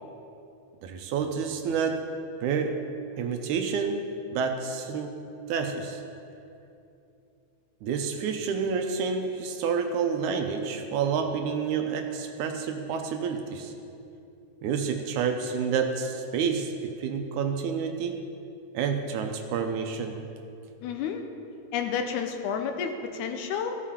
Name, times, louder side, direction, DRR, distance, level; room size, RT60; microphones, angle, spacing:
voice 1, 0.8-2.0 2.4-2.8 3.2-4.0 4.3-5.2 5.5-6.0 7.8-13.7 14.6-18.2 18.7-20.2, right 6 dB, 80° right, 5 dB, 2.0 m, -29 dB
voice 2, 20.8-21.2 21.7-23.8, left 7 dB, 80° left, 5 dB, 2.0 m, -30 dB
14.5 x 7.3 x 4.3 m, 2.7 s
omnidirectional pair, 3.7 m